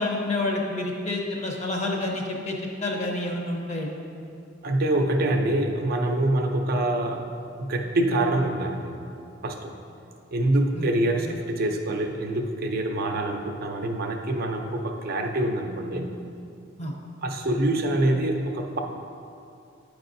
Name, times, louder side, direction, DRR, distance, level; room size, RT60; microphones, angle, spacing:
voice 1, 0.0-2.6 2.8-3.9 10.7-10.9 16.8-16.9, left 2 dB, 35° left, 0 dB, 0.7 m, -28 dB
voice 2, 4.6-7.3 7.6-9.0 9.4-9.7 10.3-16.2 17.2-18.8, right 1 dB, 50° right, 3 dB, 0.5 m, -25 dB
9.0 x 4.7 x 2.6 m, 2.5 s
head